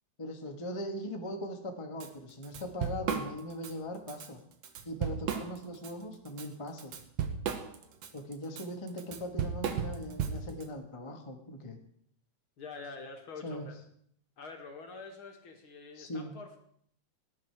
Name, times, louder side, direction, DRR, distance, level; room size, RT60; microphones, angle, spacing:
voice 1, 0.2-4.4 4.8-6.9 8.1-11.8 13.4-13.7 15.9-16.3, equal, 20° left, 3 dB, 0.8 m, -40 dB
Drum kit / Drum, 2.0-2.1 2.4-3.7 4.1-4.3 4.6-5.9 6.3-10.6, right 7 dB, 65° right, 2.3 m, -35 dB
voice 2, 12.6-13.8 14.4-16.6, left 4 dB, 50° left, 4 dB, 2.4 m, -46 dB
18.5 x 11.0 x 4.8 m, 0.67 s
omnidirectional pair, 3.4 m